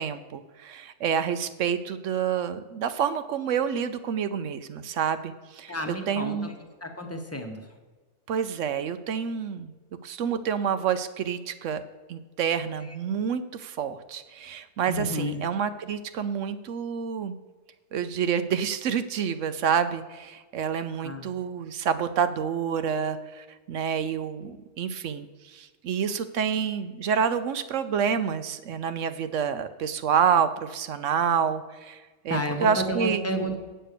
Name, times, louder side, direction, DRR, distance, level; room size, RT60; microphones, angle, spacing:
voice 1, 0.0-6.5 8.3-9.7 10.0-11.8 12.1-17.3 17.9-33.3, right 7 dB, 65° right, 12 dB, 0.9 m, -28 dB
voice 2, 5.7-6.5 6.8-7.6 12.8-12.9 14.9-15.4 21.0-21.3 32.3-33.6, equal, 10° left, 4 dB, 0.9 m, -31 dB
9.0 x 6.5 x 6.7 m, 1.3 s
omnidirectional pair, 1.5 m